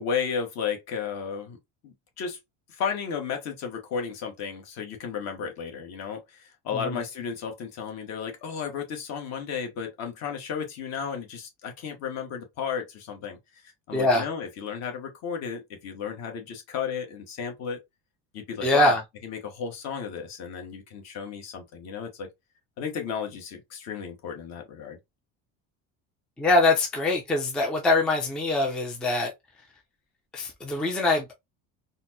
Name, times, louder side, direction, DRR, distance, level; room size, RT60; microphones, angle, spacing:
voice 1, 0.0-1.6 1.8-2.4 2.7-13.4 13.6-17.8 18.3-18.9 19.2-22.3 22.8-25.0, left 6 dB, 45° left, 1.1 m, -33 dB
voice 2, 13.9-14.3 18.6-19.0 26.4-29.3 30.3-31.3, left 2 dB, ahead, 0.3 m, -23 dB
4.1 x 2.0 x 2.6 m
cardioid pair, 165°, 36 cm